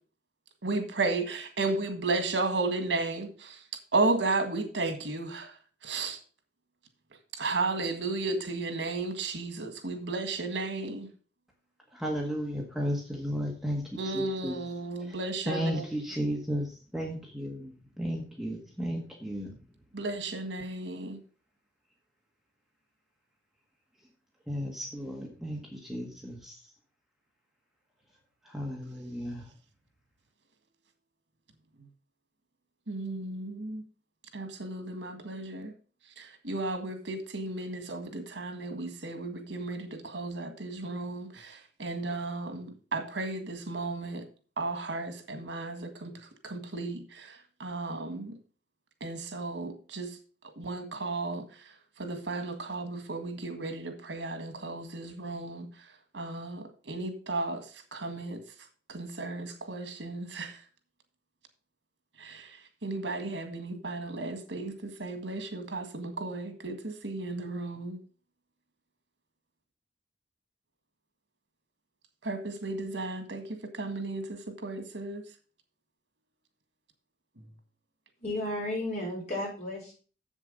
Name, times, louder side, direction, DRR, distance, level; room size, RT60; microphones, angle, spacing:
voice 1, 0.6-3.6 3.9-5.5 5.8-6.2 7.4-11.1 14.0-15.8 19.9-21.2 32.9-33.8 34.3-35.7 36.2-44.2 44.6-46.1 46.4-47.3 47.6-48.3 49.0-50.1 50.6-51.4 52.0-55.7 56.1-57.6 57.9-58.4 58.9-60.5 62.2-62.5 62.8-68.0 72.2-75.2, right 3 dB, 90° right, 1.7 m, -34 dB
voice 2, 11.9-14.6 15.0-19.6 24.5-26.7 28.4-29.5, equal, ahead, 1.6 m, -34 dB
voice 3, 78.2-79.9, left 1 dB, 40° left, 5.1 m, -33 dB
7.6 x 7.3 x 5.3 m
head